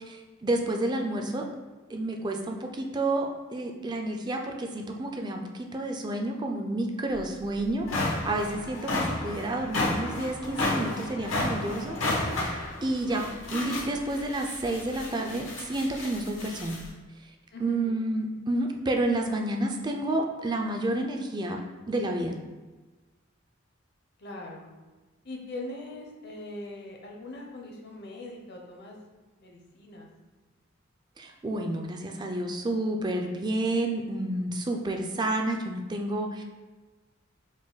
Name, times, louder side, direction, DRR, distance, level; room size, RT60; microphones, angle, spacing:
voice 1, 0.1-1.5 1.9-12.0 12.2-12.6 12.8-13.2 13.5-16.9 17.2-17.3 17.6-21.6 21.9-22.4 31.2-36.4, right 1 dB, 20° right, 3 dB, 0.3 m, -30 dB
sound 1, 7.1-7.2 7.7-16.9, left 2 dB, 90° left, 1.1 m, -32 dB
voice 2, 17.5-18.0 24.2-24.8 25.2-29.0 29.4-30.1, left 2 dB, 55° left, 0 dB, 0.7 m, -41 dB
4.9 x 2.2 x 3.9 m, 1.3 s
head